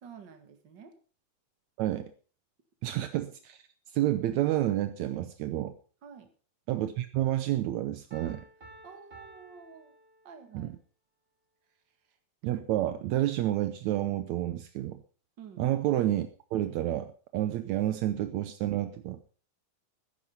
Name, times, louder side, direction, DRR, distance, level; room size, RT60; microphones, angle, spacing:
voice 1, 0.0-1.0 6.0-6.3 8.8-10.0 10.2-10.8 12.1-12.2 15.4-15.7, right 6 dB, 40° right, 7 dB, 1.9 m, -50 dB
voice 2, 1.8-2.1 2.8-3.6 3.9-5.7 6.7-8.4 10.5-10.7 12.4-15.0 15.6-19.2, right 13 dB, 80° right, 10 dB, 1.6 m, -29 dB
Piano, 8.1-10.7, right 1 dB, 15° right, 2.5 m, -53 dB
14.0 x 10.0 x 5.5 m, 0.40 s
omnidirectional pair, 4.2 m